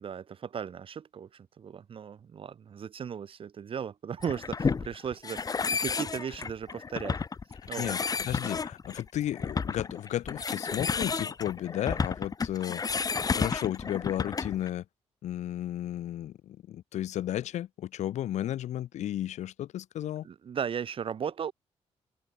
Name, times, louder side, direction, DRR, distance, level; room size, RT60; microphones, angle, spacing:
voice 1, 0.0-7.2 7.7-8.0 20.2-21.5, right 7 dB, 50° right, 7.1 m, -36 dB
sound 1, 4.2-14.7, left 5 dB, 30° left, 4.3 m, -32 dB
voice 2, 8.2-12.8 13.4-14.8 15.2-20.3, left 12 dB, 85° left, 1.0 m, -33 dB
open air
cardioid pair, 140°, 12 cm